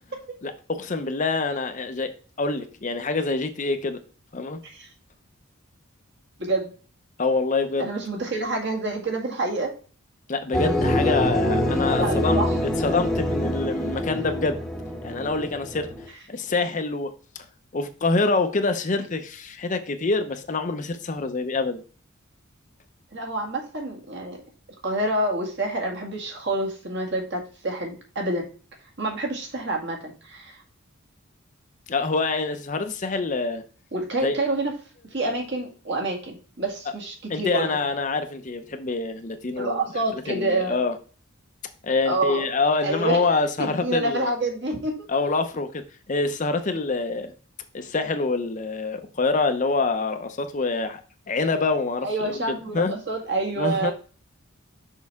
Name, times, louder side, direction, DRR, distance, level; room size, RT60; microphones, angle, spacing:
voice 1, 0.4-2.1 2.4-4.0 4.3-4.6 7.2-7.9 10.3-12.4 12.8-14.6 15.0-15.9 16.3-17.1 17.7-21.8 31.9-33.6 34.2-34.3 37.3-39.8 40.3-40.9 41.8-44.3 45.1-45.8 46.1-47.3 47.7-51.0 51.3-52.1 52.5-52.9 53.6-53.9, left 3 dB, 35° left, 0.6 m, -25 dB
voice 2, 6.4-6.7 7.8-9.7 11.6-12.6 23.1-24.4 24.8-28.5 29.0-30.6 33.9-34.7 35.1-37.7 39.6-40.8 42.1-42.5 42.8-43.2 43.6-45.1 52.0-53.9, right 2 dB, 55° right, 1.9 m, -28 dB
sound 1, 10.5-16.1, left 1 dB, ahead, 0.9 m, -25 dB
6.4 x 5.4 x 3.5 m
head